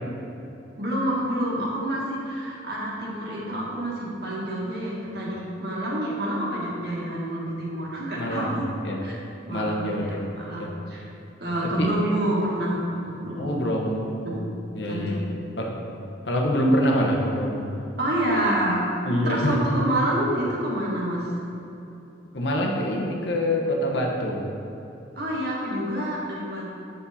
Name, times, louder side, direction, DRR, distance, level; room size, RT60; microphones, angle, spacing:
voice 1, 0.8-8.7 9.0-9.1 9.5-11.1 11.4-13.6 14.3-14.5 14.9-15.1 18.0-18.9 19.3-21.3 25.2-26.7, right 1 dB, 55° right, -4 dB, 1.7 m, -28 dB
voice 2, 8.2-9.1 9.5-10.7 11.8-11.9 13.3-14.4 14.7-15.7 16.2-17.6 19.0-19.6 22.3-24.5, equal, 70° left, -1 dB, 1.1 m, -26 dB
8.3 x 6.4 x 4.2 m, 2.8 s
head